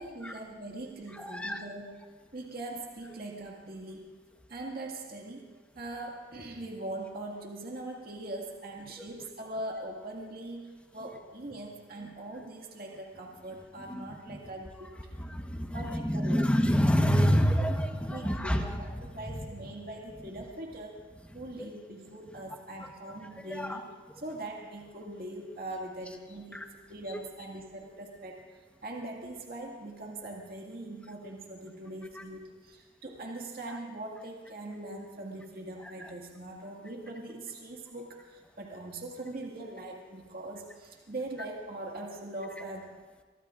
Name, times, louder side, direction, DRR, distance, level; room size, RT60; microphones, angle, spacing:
voice 1, 0.0-2.1 2.3-4.1 4.5-5.5 5.8-14.9 15.7-16.4 17.6-17.7 18.1-21.0 21.3-23.8 24.1-28.4 28.8-42.9, right 1 dB, 55° right, -1 dB, 2.0 m, -41 dB
voice 2, 1.2-1.6 14.0-14.1 15.2-18.8 23.5-23.8 26.5-26.6, equal, 5° left, 4 dB, 1.1 m, -27 dB
23.0 x 23.0 x 2.5 m, 1.4 s
head